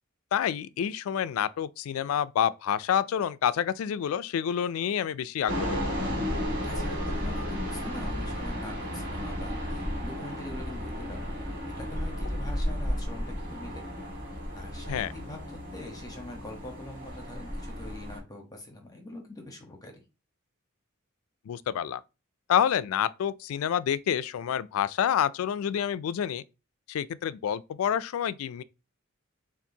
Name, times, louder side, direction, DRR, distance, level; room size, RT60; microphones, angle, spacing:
voice 1, 0.3-5.8 14.9-15.1 21.5-22.0 22.5-26.4 26.9-28.6, left 9 dB, 80° left, 0.3 m, -28 dB
sound 1, 5.5-18.2, equal, 45° right, 2.0 m, -33 dB
voice 2, 6.6-11.4 11.7-13.8 14.5-19.9, left 1 dB, 20° left, 1.0 m, -44 dB
7.0 x 2.5 x 2.7 m
head